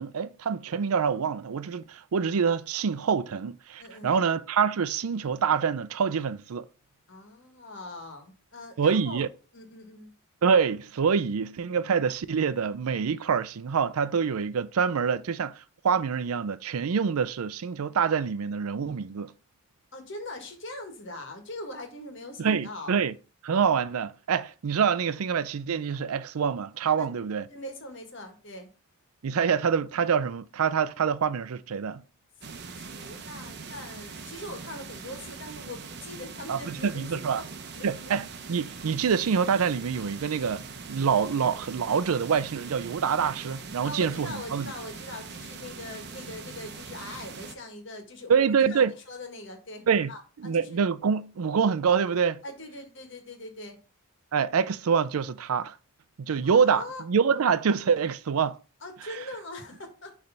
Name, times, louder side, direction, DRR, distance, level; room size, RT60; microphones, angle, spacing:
voice 1, 0.0-6.7 8.8-9.3 10.4-19.3 22.4-23.1 23.4-27.4 29.2-32.0 36.5-37.4 37.8-44.7 48.3-48.9 49.9-50.1 50.4-52.4 54.3-55.8 56.2-58.6, right 6 dB, 80° right, 0.4 m, -26 dB
voice 2, 3.8-4.2 7.1-9.2 9.5-10.1 19.9-23.0 27.0-27.1 27.5-28.7 32.5-37.5 37.7-37.8 43.8-50.8 52.4-53.8 56.4-57.0 58.8-60.1, left 2 dB, 55° left, 1.7 m, -42 dB
sound 1, 32.4-47.5, right 4 dB, 50° right, 0.8 m, -42 dB
6.6 x 3.3 x 5.7 m
head